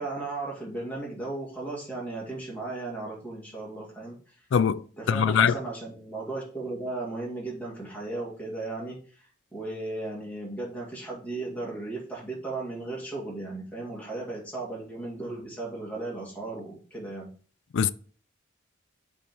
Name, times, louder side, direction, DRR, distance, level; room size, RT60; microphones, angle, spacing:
voice 1, 0.0-4.4 5.0-9.3 9.5-17.3, right 2 dB, 5° left, 2.1 m, -36 dB
voice 2, 4.5-4.8 5.1-5.5 17.7-17.9, left 7 dB, 60° left, 0.3 m, -22 dB
6.9 x 3.6 x 4.6 m
head